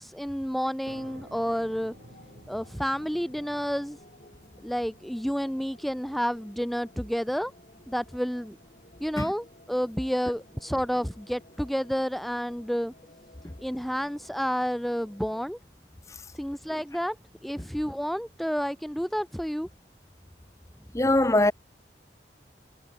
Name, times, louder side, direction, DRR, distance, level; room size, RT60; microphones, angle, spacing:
voice 1, 0.0-1.9 2.5-4.0 4.6-7.5 7.9-8.6 9.0-12.9 13.6-15.6 16.3-17.2 17.4-19.7, equal, ahead, 0.4 m, -30 dB
sound 1, 0.9-8.2, right 1 dB, 65° right, 7.2 m, -53 dB
sound 2, 1.6-15.4, left 1 dB, 45° left, 7.1 m, -56 dB
voice 2, 20.9-21.5, left 1 dB, 15° left, 0.7 m, -22 dB
head